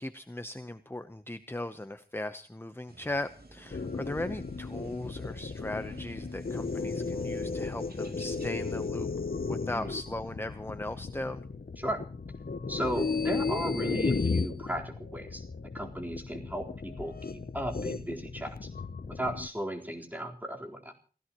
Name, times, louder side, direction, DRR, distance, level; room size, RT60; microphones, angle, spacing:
voice 1, 0.0-9.1 9.5-11.4, left 1 dB, 15° left, 10 dB, 0.9 m, -38 dB
sound 1, 2.9-8.9, right 2 dB, 75° right, 3.0 m, -52 dB
sound 2, 3.7-19.5, left 4 dB, 70° left, 0.7 m, -35 dB
voice 2, 12.7-15.4 15.7-18.7 19.1-20.9, equal, 10° right, 0 dB, 4.1 m, -35 dB
28.5 x 16.0 x 3.0 m, 0.40 s
wide cardioid pair, 50°, 16 cm